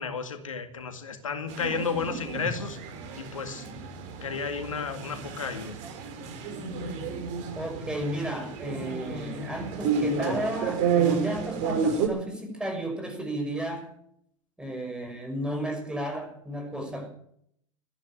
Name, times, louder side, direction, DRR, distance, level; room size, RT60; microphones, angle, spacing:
voice 1, 0.0-2.8 3.2-3.7 4.2-5.8, left 5 dB, 85° left, 2.1 m, -32 dB
sound 1, 1.5-12.1, right 5 dB, 50° right, 3.7 m, -31 dB
voice 2, 7.5-13.9 14.6-17.1, right 1 dB, 5° right, 6.0 m, -33 dB
14.5 x 11.0 x 9.0 m
hypercardioid pair, 90°, 17 cm